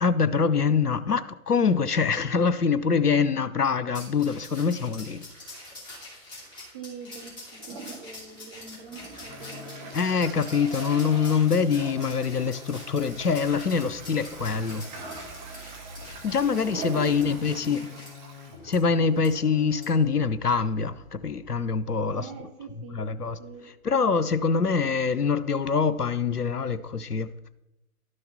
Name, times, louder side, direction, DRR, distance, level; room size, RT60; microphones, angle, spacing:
voice 1, 0.0-5.3 9.9-14.9 16.2-17.9 18.6-22.3 22.9-23.4 23.8-27.3, left 5 dB, 85° left, 0.8 m, -24 dB
sound 1, 3.9-18.1 18.7-18.8 19.2-19.3 19.8-20.0, left 1 dB, 10° left, 2.8 m, -45 dB
voice 2, 6.7-7.3 7.7-9.9 16.8-17.8 22.1-23.1 23.4-23.6, right 5 dB, 5° right, 0.5 m, -44 dB
Toilet flush, 7.6-19.4, right 3 dB, 30° right, 1.6 m, -42 dB
sound 2, 8.8-21.9, left 5 dB, 25° left, 0.7 m, -48 dB
12.0 x 6.5 x 4.2 m
figure-of-eight pair, 130°, 45 cm